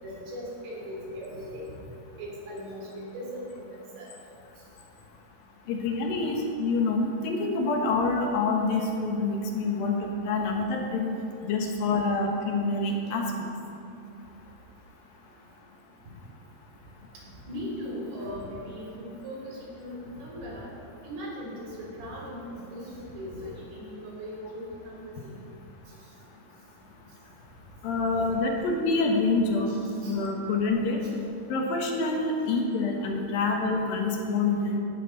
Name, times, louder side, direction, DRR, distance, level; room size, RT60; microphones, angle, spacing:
voice 1, 0.0-1.8 2.2-3.6 3.9-4.1 17.5-20.7 21.0-25.4 29.7-30.2, equal, 80° right, -4 dB, 5.3 m, -39 dB
voice 2, 5.7-11.1 11.4-13.3 27.8-29.7 30.0-31.0 31.5-34.8, left 3 dB, 70° left, 1 dB, 2.9 m, -26 dB
17.0 x 12.0 x 4.0 m, 2.7 s
omnidirectional pair, 4.6 m